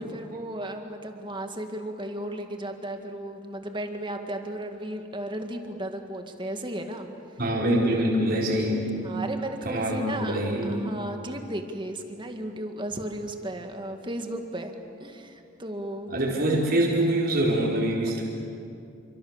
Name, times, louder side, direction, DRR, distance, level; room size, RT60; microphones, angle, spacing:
voice 1, 0.0-7.1 9.0-14.7 15.0-16.1, right 1 dB, 25° right, 5 dB, 2.0 m, -35 dB
voice 2, 7.4-8.9 9.6-10.8 16.1-18.2, right 1 dB, 50° right, -3 dB, 4.4 m, -24 dB
28.5 x 25.5 x 7.3 m, 2.6 s
head